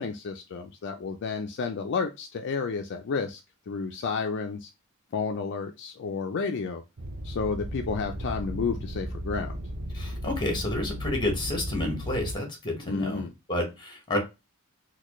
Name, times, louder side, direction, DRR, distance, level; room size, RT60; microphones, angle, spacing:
voice 1, 0.0-3.4 3.7-4.7 5.1-6.8 7.2-9.6 12.9-13.3, left 5 dB, 55° left, 5 dB, 0.4 m, -31 dB
sound 1, 7.0-12.3, equal, 40° right, 0.5 m, -35 dB
voice 2, 9.9-13.2 13.5-14.2, left 1 dB, 20° left, 3 dB, 1.2 m, -30 dB
4.1 x 2.3 x 3.0 m, 0.25 s
head